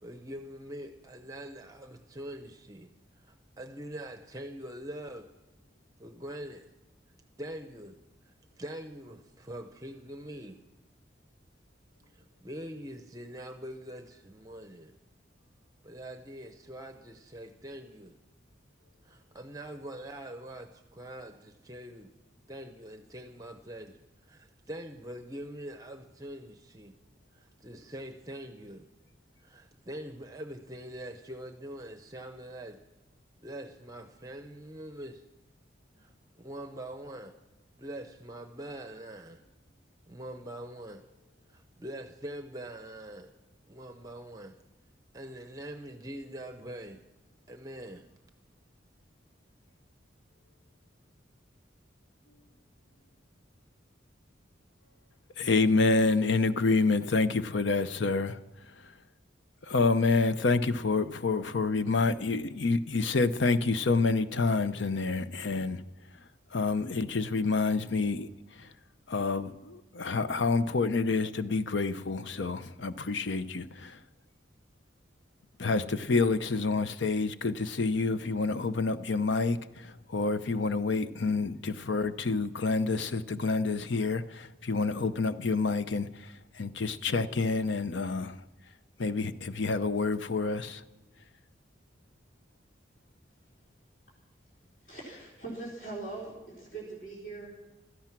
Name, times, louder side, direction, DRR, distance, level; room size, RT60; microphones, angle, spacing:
voice 1, 0.0-5.3 6.0-6.7 7.4-8.0 8.3-10.6 12.1-15.0 15.8-18.2 19.0-22.1 22.5-27.0 27.3-28.8 29.4-32.8 33.4-35.2 36.0-36.1 36.4-37.3 37.8-39.4 40.1-41.0 41.5-43.3 43.7-44.6 45.1-47.0 47.5-48.1, right 1 dB, 20° right, 0.7 m, -43 dB
voice 2, 55.4-58.4 59.7-65.8 66.5-68.3 68.6-68.7 69.1-74.0 75.6-88.4 89.0-90.8, left 3 dB, 70° left, 0.7 m, -28 dB
voice 3, 94.8-97.7, right 3 dB, 45° left, 4.3 m, -41 dB
16.5 x 13.0 x 6.0 m
head